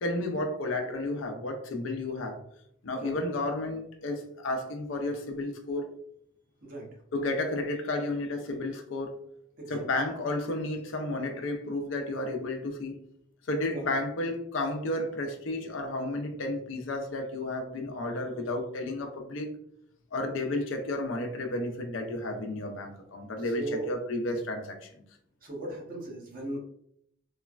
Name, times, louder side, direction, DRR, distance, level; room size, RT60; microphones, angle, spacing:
voice 1, 0.0-2.4 2.8-5.9 7.1-9.2 9.7-13.0 13.5-19.5 20.1-24.9, left 2 dB, 80° left, 0.5 m, -32 dB
voice 2, 23.6-23.9 25.4-26.6, right 2 dB, 45° right, 0.8 m, -37 dB
3.1 x 2.1 x 2.4 m
head